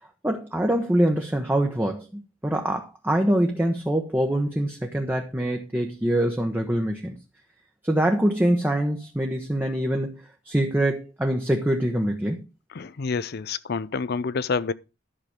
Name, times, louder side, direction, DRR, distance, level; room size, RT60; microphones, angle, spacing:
voice 1, 0.2-7.2 7.8-12.4, right 1 dB, 10° right, 1.0 m, -24 dB
voice 2, 12.7-14.7, left 5 dB, 55° left, 0.5 m, -28 dB
11.5 x 5.9 x 5.1 m
head